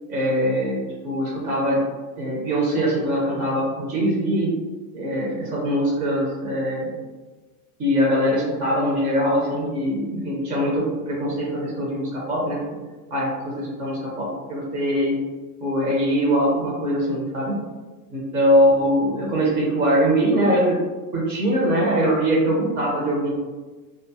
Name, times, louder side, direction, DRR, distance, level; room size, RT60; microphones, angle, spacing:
voice 1, 0.1-1.8 2.1-4.5 4.9-7.0 7.8-12.6 13.1-15.2 15.6-17.5 18.1-20.8 21.1-23.3, equal, 20° right, -5 dB, 0.4 m, -22 dB
2.7 x 2.3 x 2.6 m, 1.3 s
supercardioid pair, 150°, 44 cm